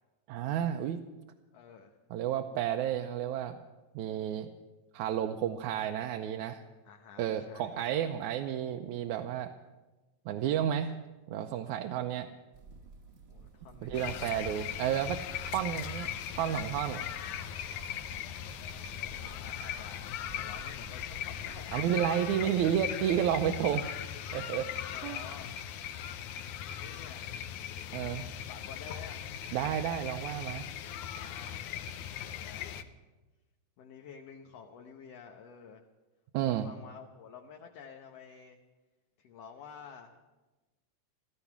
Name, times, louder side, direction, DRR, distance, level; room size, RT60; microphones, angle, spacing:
voice 1, 0.3-1.0 2.1-3.6 4.0-4.5 4.9-6.6 7.2-9.5 10.3-10.9 11.3-12.3 13.8-17.1 21.7-23.9 24.3-24.7 25.0-25.2 27.9-28.3 29.5-30.7 36.3-36.7, right 10 dB, 85° right, 5 dB, 2.1 m, -31 dB
voice 2, 1.5-2.0 6.9-7.8 13.3-14.2 18.9-21.7 22.2-22.6 24.9-25.5 26.8-27.6 28.4-29.3 31.1-31.7 32.2-32.8 33.8-35.9 36.4-38.6 39.2-40.2, left 7 dB, 65° left, 2 dB, 2.0 m, -50 dB
sound 1, 12.5-21.8, right 5 dB, 55° right, 0.7 m, -53 dB
sound 2, 13.9-32.8, left 10 dB, 85° left, 2.2 m, -39 dB
15.5 x 14.0 x 6.0 m, 1.1 s
omnidirectional pair, 3.4 m